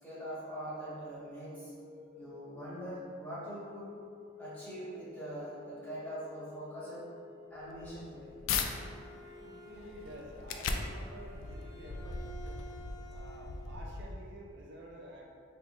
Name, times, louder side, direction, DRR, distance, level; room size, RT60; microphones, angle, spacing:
voice 1, 0.0-1.7 2.1-3.9 4.4-7.1 7.5-8.4, equal, 10° left, -10 dB, 1.3 m, -43 dB
sound 1, 1.3-11.9, left 5 dB, 55° left, 1.0 m, -54 dB
sound 2, 7.6-8.7 9.2-14.5, left 4 dB, 70° left, 0.3 m, -39 dB
Bowed string instrument, 8.3-13.8, right 2 dB, 35° left, 0.7 m, -53 dB
voice 2, 9.4-12.8 13.1-15.3, right 1 dB, 60° right, -1 dB, 0.5 m, -50 dB
4.6 x 3.5 x 2.4 m, 2.4 s
head